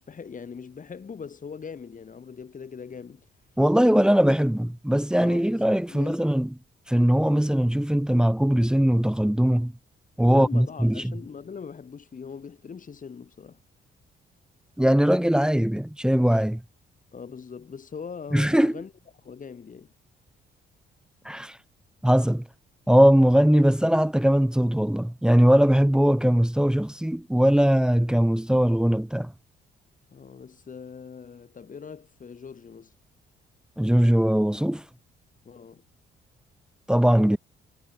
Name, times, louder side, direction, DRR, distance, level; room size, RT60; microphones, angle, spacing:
voice 1, 0.0-3.3 5.2-5.6 5.9-6.2 10.3-13.6 17.1-18.9 19.2-19.9 30.1-32.9 35.4-35.8, left 6 dB, 40° left, 7.2 m, -41 dB
voice 2, 3.6-6.5 6.9-9.7 10.2-11.1 14.8-16.6 18.3-18.7 21.3-21.6 22.0-22.5 22.9-29.3 33.8-34.8 36.9-37.4, equal, 5° right, 2.0 m, -20 dB
cardioid pair, 90°, 20 cm